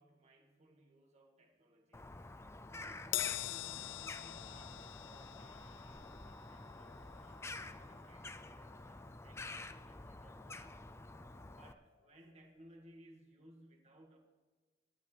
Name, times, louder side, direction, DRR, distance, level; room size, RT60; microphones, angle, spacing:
voice 1, 0.0-2.1 2.7-10.8 11.5-14.2, right 1 dB, 40° right, 1 dB, 1.8 m, -62 dB
Bird vocalization bird call bird song, 1.9-11.7, left 2 dB, 15° left, 0.5 m, -49 dB
Crash cymbal, 3.1-9.8 10.1-10.3 11.4-11.5, left 15 dB, 80° left, 0.4 m, -45 dB
18.0 x 12.0 x 3.4 m, 1.4 s
head